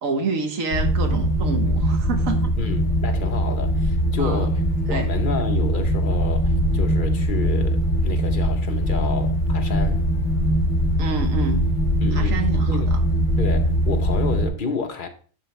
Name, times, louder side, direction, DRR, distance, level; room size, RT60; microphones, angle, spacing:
voice 1, 0.0-2.5 4.2-4.4 4.9-5.1 11.0-11.6 12.1-13.0, right 4 dB, 90° right, 1.5 m, -28 dB
sound 1, 0.7-14.5, equal, 65° left, 1.3 m, -21 dB
voice 2, 2.6-4.6 4.9-10.0 12.0-12.9 13.4-15.1, left 5 dB, 45° left, 1.0 m, -30 dB
11.5 x 3.9 x 3.2 m
omnidirectional pair, 1.4 m